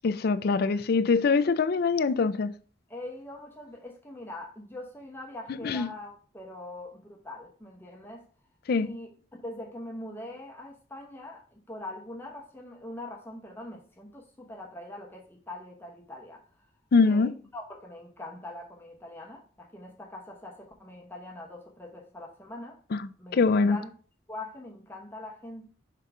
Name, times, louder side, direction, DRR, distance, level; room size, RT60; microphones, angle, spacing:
voice 1, 0.0-2.5 5.6-5.9 8.7-8.9 16.9-17.3 23.0-23.8, left 4 dB, 60° left, 0.4 m, -23 dB
voice 2, 2.9-8.3 8.8-9.1 9.4-16.7 17.0-22.8 23.2-23.9 24.3-25.7, left 1 dB, 10° left, 0.9 m, -43 dB
5.7 x 3.8 x 4.7 m
head